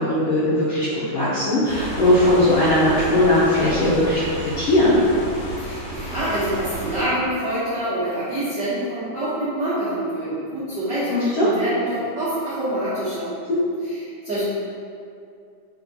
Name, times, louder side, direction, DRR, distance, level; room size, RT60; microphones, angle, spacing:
voice 1, 0.0-5.0 11.1-11.5 13.5-13.6, left 1 dB, 75° left, -11 dB, 1.4 m, -19 dB
sound 1, 1.6-7.0, right 1 dB, 90° left, 1.0 m, -32 dB
voice 2, 5.6-13.3 13.8-14.4, right 1 dB, 75° right, -13 dB, 1.0 m, -26 dB
4.3 x 4.2 x 2.8 m, 2.4 s
omnidirectional pair, 3.7 m